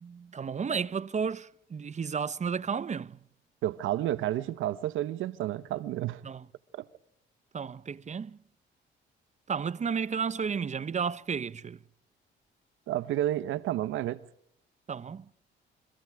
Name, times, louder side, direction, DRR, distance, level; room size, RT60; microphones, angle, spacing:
voice 1, 0.0-3.2 6.2-6.4 7.5-8.4 9.5-11.8 14.9-15.2, right 6 dB, 35° right, 0.9 m, -32 dB
voice 2, 3.6-6.2 6.8-6.9 12.9-14.2, right 13 dB, 85° right, 1.2 m, -31 dB
29.5 x 24.5 x 4.9 m
cardioid pair, 90°, 20 cm